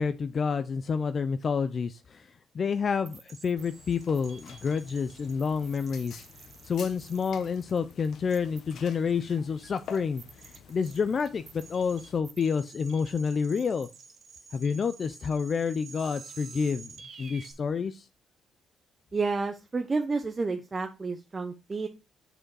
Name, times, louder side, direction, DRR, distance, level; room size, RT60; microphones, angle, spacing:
voice 1, 0.0-2.3 2.5-6.3 6.6-10.2 10.7-13.9 14.5-16.9 17.2-18.1, left 6 dB, 45° left, 0.4 m, -29 dB
sound 1, 3.1-17.5, right 5 dB, 50° right, 1.1 m, -50 dB
sound 2, 3.6-12.2, left 7 dB, 70° left, 1.0 m, -49 dB
voice 2, 19.1-21.9, right 4 dB, 30° right, 0.7 m, -30 dB
6.3 x 4.9 x 4.6 m
cardioid pair, 90°, 0 cm